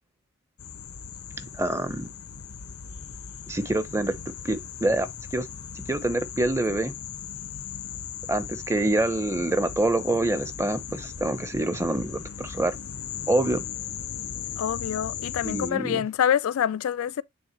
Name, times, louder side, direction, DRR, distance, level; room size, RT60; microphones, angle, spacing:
sound 1, 0.6-15.7, left 8 dB, 85° left, 0.9 m, -38 dB
voice 1, 1.6-2.1 3.5-4.1 4.4-5.5 5.7-6.9 8.3-12.7 13.3-13.6 15.4-16.0, right 2 dB, 15° right, 0.8 m, -26 dB
voice 2, 14.6-17.2, left 9 dB, 70° left, 0.3 m, -26 dB
9.4 x 3.8 x 3.0 m
head